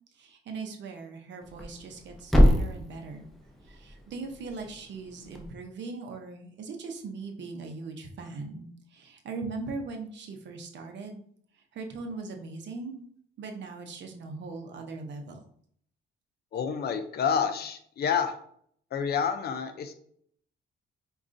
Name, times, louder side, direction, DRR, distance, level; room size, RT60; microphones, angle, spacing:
voice 1, 0.2-3.3 3.7-11.2 11.7-13.0 13.4-15.4, right 3 dB, 65° right, 4 dB, 0.7 m, -40 dB
Thump thud, 1.4-5.5, equal, ahead, 0.6 m, -27 dB
voice 2, 16.5-18.4 18.9-19.9, left 7 dB, 55° left, 7 dB, 0.5 m, -28 dB
4.7 x 2.3 x 2.6 m, 0.63 s
cardioid pair, 90°, 20 cm